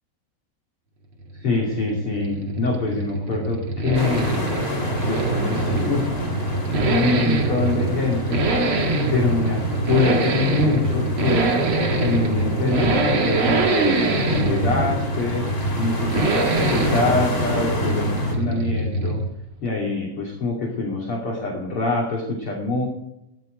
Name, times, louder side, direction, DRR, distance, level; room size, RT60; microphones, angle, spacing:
Accelerating revving vroom, 1.2-19.4 19.7-19.8, right 2 dB, 45° right, 1.8 m, -23 dB
voice 1, 1.4-4.3 5.0-6.0 6.9-8.4 9.1-9.6 9.9-11.5 12.0-15.5 15.8-19.2 19.6-22.8, left 3 dB, 35° left, -2 dB, 3.0 m, -24 dB
sound 1, 3.9-18.3, left 1 dB, 15° left, 2.5 m, -31 dB
17.0 x 13.0 x 5.2 m, 0.88 s
omnidirectional pair, 5.0 m